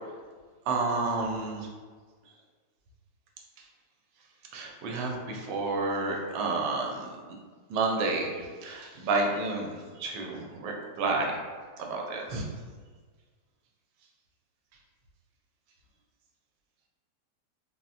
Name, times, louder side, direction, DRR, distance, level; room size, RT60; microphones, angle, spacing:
voice 1, 0.7-1.7 4.5-7.1 7.7-11.3 11.8-12.4, right 3 dB, 85° right, 0 dB, 1.2 m, -30 dB
3.9 x 2.0 x 2.5 m, 1.5 s
omnidirectional pair, 1.9 m